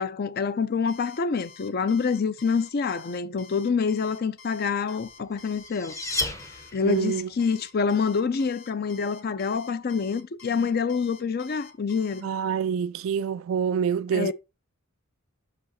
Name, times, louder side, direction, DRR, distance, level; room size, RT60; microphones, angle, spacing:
voice 1, 0.0-6.0 6.7-12.3 14.1-14.3, left 5 dB, 45° left, 0.5 m, -26 dB
Alarm, 0.9-12.2, left 5 dB, 70° left, 1.0 m, -49 dB
sound 1, 5.1-7.2, left 2 dB, 15° left, 0.7 m, -33 dB
voice 2, 6.8-7.3 12.2-14.3, right 7 dB, 65° right, 0.3 m, -26 dB
5.7 x 5.0 x 4.0 m
head